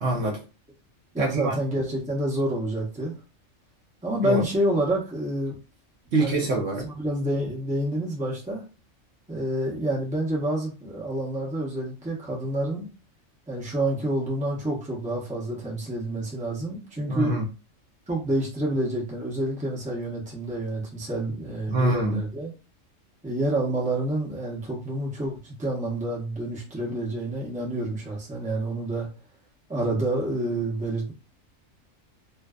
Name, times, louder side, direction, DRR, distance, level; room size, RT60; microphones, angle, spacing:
voice 1, 0.0-0.4 1.2-1.6 4.2-4.4 6.1-6.9 17.1-17.5 21.7-22.2, right 2 dB, 60° right, 0.8 m, -25 dB
voice 2, 1.1-3.1 4.0-5.5 6.2-8.6 9.3-12.9 13.5-17.3 18.1-22.5 23.2-29.1 29.7-31.1, right 1 dB, 10° right, 0.6 m, -28 dB
2.5 x 2.3 x 2.3 m
omnidirectional pair, 1.3 m